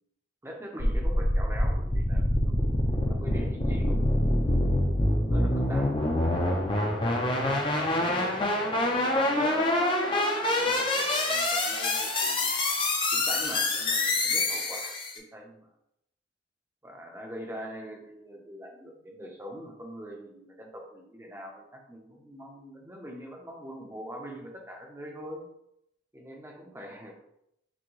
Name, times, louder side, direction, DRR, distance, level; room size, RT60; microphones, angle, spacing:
voice 1, 0.4-2.6 3.1-5.9 6.7-9.7 10.0-12.5 13.1-15.7 16.8-25.4 26.1-27.1, equal, 15° right, 0 dB, 0.6 m, -43 dB
sound 1, 0.8-15.2, left 1 dB, 25° left, 0.5 m, -26 dB
6.0 x 2.2 x 3.1 m, 0.79 s
head